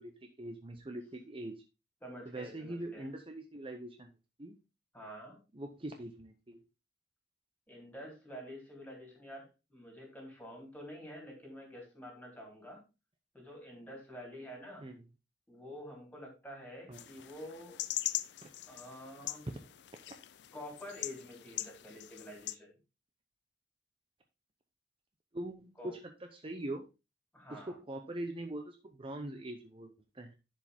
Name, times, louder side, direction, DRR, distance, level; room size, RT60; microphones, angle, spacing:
voice 1, 0.0-1.6 2.3-4.1 4.4-4.6 5.5-6.6 14.8-15.0 16.9-17.0 18.4-18.5 20.1-20.2 25.3-26.0 26.3-26.9 27.5-30.3, right 1 dB, 30° right, 5 dB, 0.7 m, -42 dB
voice 2, 2.0-3.1 4.9-5.4 7.7-12.8 13.3-14.9 15.5-17.8 18.7-19.4 20.5-22.8 25.8-25.9 27.3-27.7, equal, 10° left, -1 dB, 3.6 m, -48 dB
sound 1, 16.9-22.5, left 14 dB, 70° left, 0.4 m, -41 dB
11.0 x 5.0 x 3.5 m, 0.28 s
head